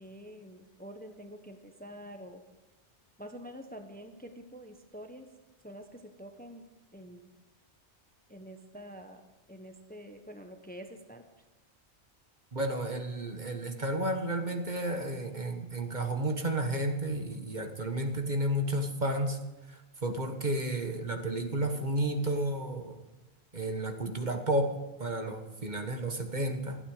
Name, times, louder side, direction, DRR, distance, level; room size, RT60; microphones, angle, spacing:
voice 1, 0.0-2.4 3.2-5.3 5.6-6.6 6.9-7.3 8.3-9.2 9.5-11.2, equal, 10° left, 5 dB, 1.1 m, -47 dB
voice 2, 12.5-19.4 19.7-22.9 23.5-26.8, right 1 dB, 40° right, 5 dB, 1.5 m, -32 dB
27.5 x 9.2 x 5.0 m, 1.1 s
omnidirectional pair, 1.2 m